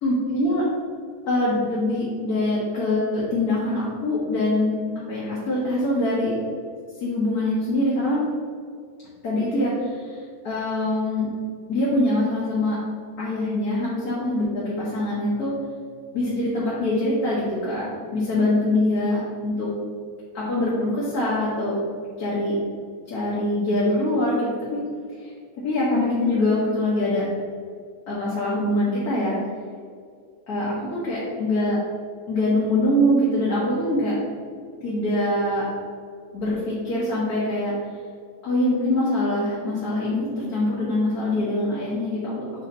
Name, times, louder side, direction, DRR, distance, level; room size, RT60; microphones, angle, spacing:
voice 1, 0.0-0.6 1.3-4.8 5.1-6.3 7.0-8.2 9.2-11.3 11.7-12.8 13.2-15.5 16.1-19.7 20.3-21.8 22.2-22.6 23.1-24.8 25.2-25.3 25.6-27.3 28.1-29.4 30.5-31.8 32.3-34.2 34.8-35.6 36.3-37.7 38.4-42.5, left 1 dB, 80° left, -8 dB, 1.9 m, -24 dB
8.0 x 2.8 x 5.3 m, 2.1 s
omnidirectional pair, 1.6 m